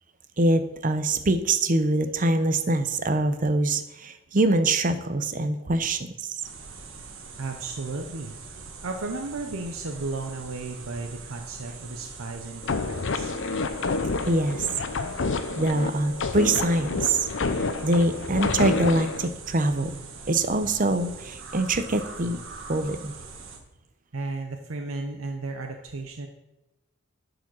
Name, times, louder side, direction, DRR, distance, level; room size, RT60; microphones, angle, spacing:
voice 1, 0.4-6.4 14.3-14.7 15.6-17.3 17.8-19.9 20.3-22.4 22.7-23.1, right 2 dB, 40° right, 10 dB, 0.7 m, -24 dB
sound 1, 6.4-23.6, right 4 dB, 70° right, 1.5 m, -43 dB
voice 2, 7.4-13.3 24.1-26.3, right 3 dB, 90° right, 4 dB, 0.8 m, -34 dB
sound 2, 12.6-19.3, left 3 dB, 65° left, 0.7 m, -29 dB
10.5 x 5.0 x 6.2 m, 0.97 s
head